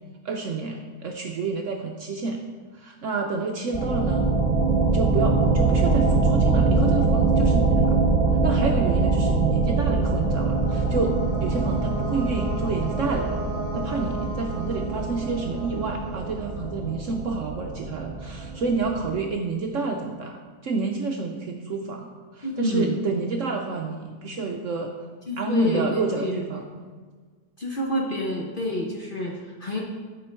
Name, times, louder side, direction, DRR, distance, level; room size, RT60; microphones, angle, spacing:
voice 1, 0.2-2.4 2.7-4.3 4.8-8.0 8.4-11.2 11.4-13.4 13.7-20.4 20.6-22.1 22.3-24.9 25.4-26.6, right 4 dB, 65° right, 2 dB, 0.8 m, -29 dB
sound 1, 3.7-19.1, right 3 dB, 20° right, 1.6 m, -23 dB
sound 2, 9.3-17.1, equal, 10° left, 2.3 m, -37 dB
voice 2, 22.4-23.0 25.3-25.8 26.2-26.4 26.7-26.8 27.6-29.8, left 1 dB, 40° left, -2 dB, 0.8 m, -28 dB
11.5 x 4.6 x 4.5 m, 1.5 s
omnidirectional pair, 1.8 m